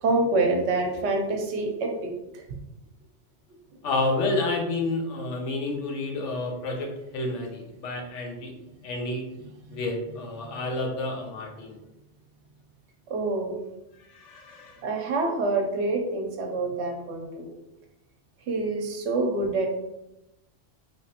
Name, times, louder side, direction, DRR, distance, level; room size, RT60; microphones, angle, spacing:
voice 1, 0.0-2.4 13.1-13.6 14.8-17.5 18.5-19.7, right 2 dB, 75° right, 2 dB, 0.9 m, -26 dB
voice 2, 3.8-8.5 8.8-9.2 9.7-11.8 14.1-14.8, left 2 dB, 85° left, 1 dB, 1.0 m, -30 dB
3.3 x 2.9 x 2.8 m, 0.92 s
omnidirectional pair, 1.2 m